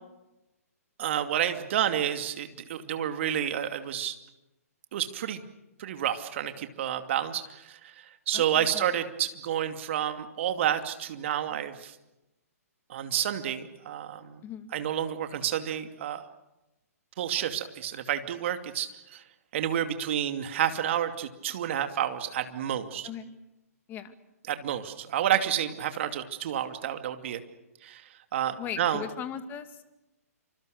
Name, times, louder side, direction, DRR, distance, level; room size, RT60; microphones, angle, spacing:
voice 1, 1.0-4.2 4.9-5.4 5.8-12.0 12.9-14.4 14.7-16.2 17.2-19.2 19.5-23.1 24.5-27.4 27.8-29.0, right 10 dB, 50° right, 8 dB, 2.5 m, -30 dB
voice 2, 8.3-8.9 14.4-14.7 23.0-23.3 23.9-24.1 28.6-29.8, left 8 dB, 20° left, 9 dB, 2.2 m, -38 dB
28.0 x 26.0 x 6.6 m, 0.97 s
figure-of-eight pair, 125°, 9 cm